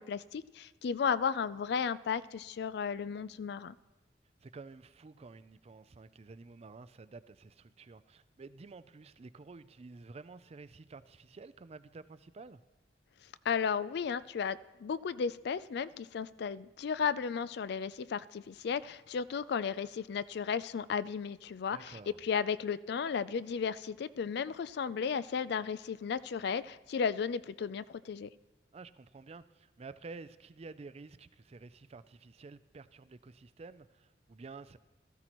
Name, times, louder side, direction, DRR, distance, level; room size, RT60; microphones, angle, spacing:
voice 1, 0.0-3.7 13.4-28.3, left 6 dB, 65° left, 0.4 m, -34 dB
voice 2, 4.4-12.6 21.7-22.2 28.7-34.8, right 3 dB, 35° right, 0.4 m, -51 dB
16.5 x 14.0 x 3.0 m
head